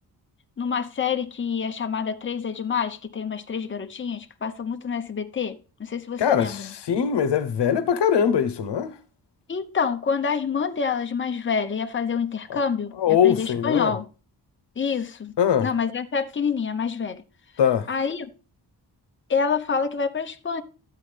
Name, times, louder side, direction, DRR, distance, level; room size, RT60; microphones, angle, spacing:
voice 1, 0.6-6.7 9.5-14.1 14.8-15.3 15.6-17.2 17.9-18.3 19.3-20.6, left 6 dB, 30° left, 0.9 m, -27 dB
voice 2, 6.2-6.6 6.9-8.9 12.5-12.6 13.0-13.9 15.4-15.7 17.6-17.9, left 8 dB, 80° left, 1.0 m, -21 dB
13.0 x 8.4 x 3.3 m
wide cardioid pair, 120°, 41 cm